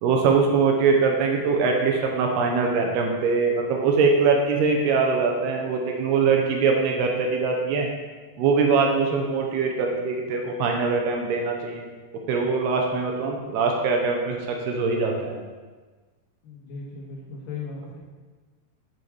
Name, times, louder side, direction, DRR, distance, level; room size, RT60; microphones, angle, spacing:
voice 1, 0.0-7.9 8.4-11.9 12.3-15.4, right 4 dB, 80° right, 2 dB, 2.6 m, -22 dB
voice 2, 16.4-18.0, left 4 dB, 70° left, -4 dB, 2.4 m, -37 dB
7.3 x 5.3 x 4.7 m, 1.4 s
omnidirectional pair, 4.9 m